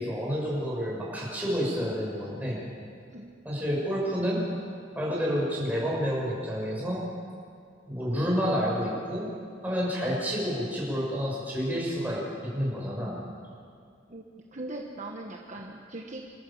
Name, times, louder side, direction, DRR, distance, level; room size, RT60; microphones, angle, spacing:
voice 1, 0.0-2.6 3.4-4.4 4.9-7.0 7.9-9.2 9.6-13.2, equal, 10° right, -5 dB, 6.1 m, -29 dB
voice 2, 14.5-16.2, right 2 dB, 40° right, 0 dB, 1.2 m, -39 dB
26.5 x 13.5 x 7.2 m, 2.3 s
head